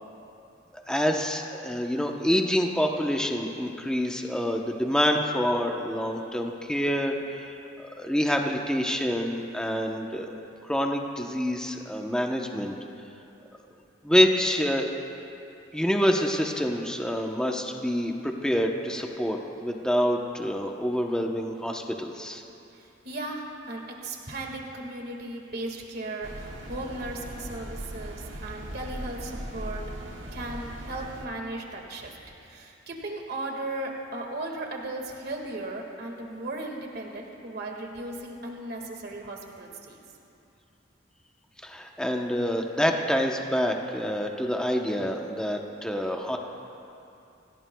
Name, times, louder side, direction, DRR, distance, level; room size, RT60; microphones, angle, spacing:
voice 1, 0.9-10.3 10.6-12.7 14.0-14.9 15.7-22.4 41.6-46.4, equal, 5° left, 1 dB, 0.8 m, -27 dB
voice 2, 22.7-40.0, right 2 dB, 55° right, 1 dB, 1.9 m, -36 dB
sound 1, 26.2-31.3, right 1 dB, 80° right, 1.6 m, -39 dB
27.0 x 17.5 x 2.3 m, 2.7 s
head